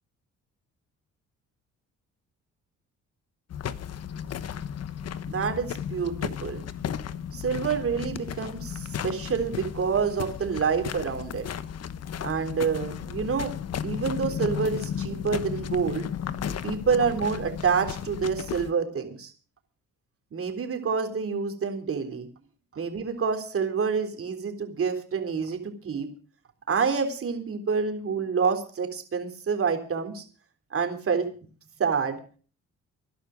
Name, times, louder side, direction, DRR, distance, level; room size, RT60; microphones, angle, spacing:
sound 1, 3.5-18.7, left 8 dB, 55° left, 1.1 m, -34 dB
voice 1, 5.3-6.7 7.3-11.5 12.2-13.5 13.8-16.1 16.6-19.3 20.3-22.3 22.8-26.1 26.7-30.2 30.7-31.3 31.8-32.2, right 6 dB, 45° right, 5 dB, 3.6 m, -27 dB
18.0 x 11.5 x 5.2 m, 0.39 s
cardioid pair, 90°, 30 cm